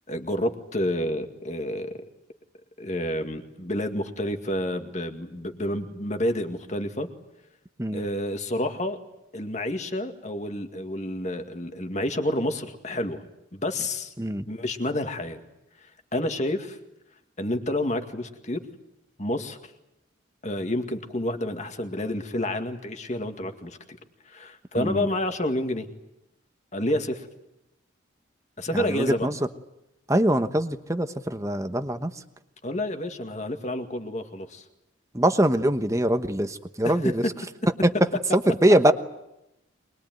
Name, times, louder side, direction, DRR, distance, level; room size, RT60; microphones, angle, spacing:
voice 1, 0.1-2.1 2.8-7.1 7.9-9.0 9.3-13.2 13.5-14.1 14.5-15.4 16.1-16.8 17.4-18.6 19.2-19.6 20.4-24.0 24.3-25.9 26.7-27.3 28.6-29.3 32.6-34.6 36.8-37.3, left 1 dB, 35° left, 6 dB, 2.1 m, -29 dB
voice 2, 24.8-25.1 28.7-29.3 30.1-32.1 35.1-37.2 37.8-37.9 38.5-38.9, right 1 dB, 15° right, 9 dB, 1.1 m, -23 dB
24.0 x 22.0 x 9.3 m, 0.90 s
head